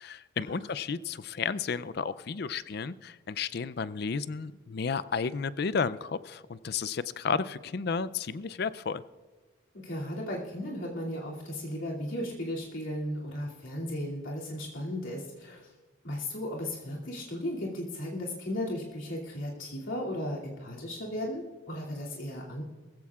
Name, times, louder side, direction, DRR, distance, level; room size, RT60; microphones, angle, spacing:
voice 1, 0.0-9.0, left 5 dB, 50° left, 16 dB, 0.4 m, -32 dB
voice 2, 9.7-15.7 16.0-22.6, left 1 dB, 75° left, -4 dB, 2.6 m, -35 dB
20.5 x 15.5 x 2.4 m, 1.4 s
head